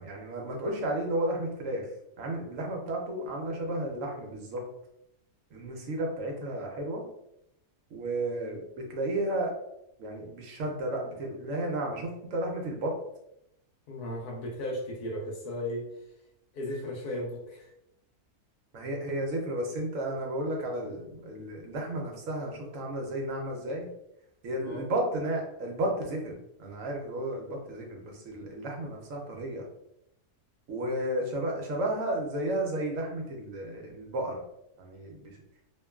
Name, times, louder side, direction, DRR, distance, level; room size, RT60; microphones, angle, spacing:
voice 1, 0.0-1.8 2.2-4.6 5.5-7.0 7.9-9.5 10.0-12.9 18.7-23.9 24.4-26.3 26.6-29.6 30.7-34.4 34.8-35.3, right 1 dB, 65° right, 0 dB, 0.9 m, -33 dB
voice 2, 13.9-15.9 16.5-17.7 24.5-24.9, left 1 dB, 85° left, 0 dB, 1.2 m, -35 dB
3.0 x 2.2 x 2.2 m, 0.81 s
omnidirectional pair, 1.6 m